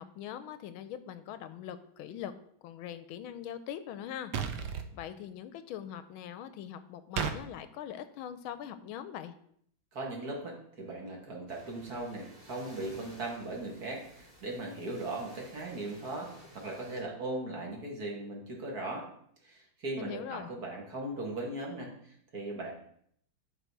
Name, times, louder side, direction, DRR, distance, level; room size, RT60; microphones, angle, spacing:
voice 1, 0.0-2.3 2.6-4.3 4.6-9.3 20.0-20.5, left 10 dB, 80° left, 12 dB, 1.4 m, -42 dB
sound 1, 4.3-4.9 7.2-7.4, right 7 dB, 65° right, 1.2 m, -32 dB
voice 2, 9.9-19.0 19.4-22.7, right 2 dB, 50° right, -1 dB, 2.2 m, -38 dB
sound 2, 11.5-17.0, equal, 10° right, 3.5 m, -54 dB
11.0 x 4.1 x 4.6 m, 0.66 s
omnidirectional pair, 2.3 m